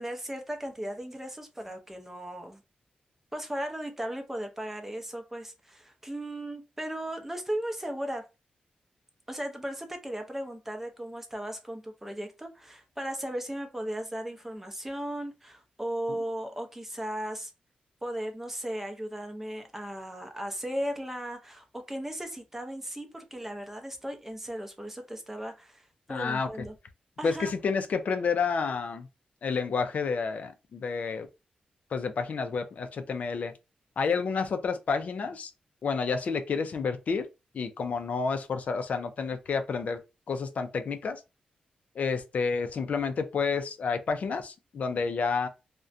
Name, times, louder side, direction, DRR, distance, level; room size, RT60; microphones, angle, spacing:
voice 1, 0.0-2.6 3.3-8.3 9.3-17.5 18.0-26.7 27.2-27.5, right 1 dB, 10° right, 0.5 m, -36 dB
voice 2, 26.1-26.5 27.2-29.1 29.4-31.3 31.9-33.5 34.0-35.5 35.8-37.3 37.5-40.0 40.3-41.2 42.0-45.5, left 5 dB, 60° left, 0.4 m, -30 dB
2.4 x 2.1 x 2.5 m
wide cardioid pair, 95°, 3 cm